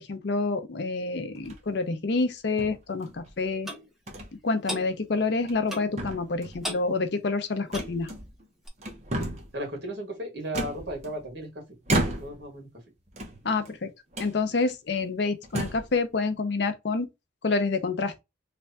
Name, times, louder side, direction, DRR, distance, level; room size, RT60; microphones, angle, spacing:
voice 1, 0.0-3.7 4.4-8.1 13.4-13.9 14.2-17.1 17.4-18.1, left 3 dB, 60° left, 0.5 m, -28 dB
sound 1, 1.4-1.8 2.6-3.3 4.1-4.3 4.7-4.8 5.3-5.7 6.0-6.7 7.7-8.5 8.8-9.6 10.5-11.4 11.8-12.5 13.1-13.8 14.1-14.3 15.0-15.1 15.4-15.9, right 1 dB, 35° right, 0.9 m, -32 dB
Clock, 3.7-3.8 4.7-4.9 5.7-6.0 6.6-6.9 7.7-8.0 8.7-8.8, equal, 5° right, 0.7 m, -35 dB
voice 2, 9.5-11.6 12.0-12.7, right 1 dB, 60° right, 1.7 m, -35 dB
3.3 x 2.3 x 3.9 m
head